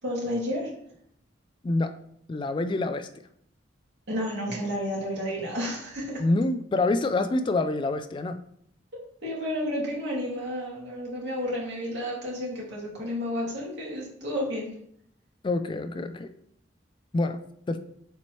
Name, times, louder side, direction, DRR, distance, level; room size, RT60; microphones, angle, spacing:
voice 1, 0.0-0.7 4.1-6.2 8.9-14.7, equal, 70° right, -4 dB, 2.6 m, -31 dB
voice 2, 2.3-3.1 6.2-8.4 15.4-16.3 17.1-17.4 17.7-17.8, left 2 dB, 25° left, 9 dB, 0.3 m, -26 dB
7.0 x 4.4 x 3.1 m, 0.69 s
head